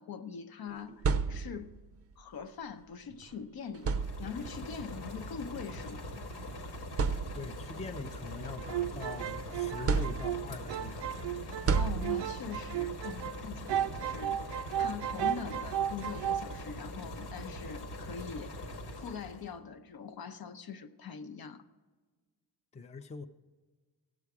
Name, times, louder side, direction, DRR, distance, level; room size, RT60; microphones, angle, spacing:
voice 1, 0.0-1.8 2.2-3.9 4.2-6.3 11.4-21.6, left 6 dB, 60° left, 0.7 m, -43 dB
sound 1, 0.7-1.8 3.1-3.2 3.7-4.6 5.7-5.9 6.4-6.5 6.9-7.7 8.2-9.3 9.9-10.7 11.7-12.6, right 5 dB, 35° right, 0.5 m, -32 dB
sound 2, 3.7-19.5, left 1 dB, 90° left, 1.6 m, -43 dB
voice 2, 7.3-11.1 22.7-23.3, left 3 dB, 15° left, 0.5 m, -42 dB
sound 3, 8.6-13.4 13.7-16.5, right 11 dB, 85° right, 0.5 m, -34 dB
17.0 x 7.0 x 4.8 m
cardioid pair, 115°, 41 cm